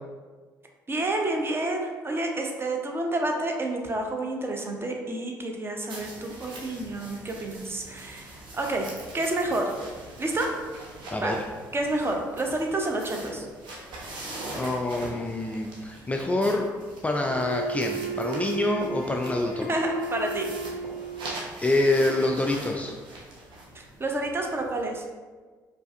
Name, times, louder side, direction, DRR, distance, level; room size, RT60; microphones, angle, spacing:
voice 1, 0.9-9.8 10.2-10.6 11.2-11.3 11.7-13.5 19.7-20.5 23.7-25.0, right 2 dB, 25° right, 2 dB, 0.6 m, -29 dB
sound 1, 5.9-24.8, right 2 dB, 55° right, 0.8 m, -42 dB
voice 2, 11.1-11.4 14.5-16.7 17.0-19.7 21.6-22.9, left 2 dB, 15° left, 2 dB, 0.3 m, -26 dB
Wind instrument woodwind instrument, 17.3-21.4, right 3 dB, 80° right, 1.3 m, -34 dB
4.6 x 2.4 x 2.5 m, 1.4 s
figure-of-eight pair, 45°, 10 cm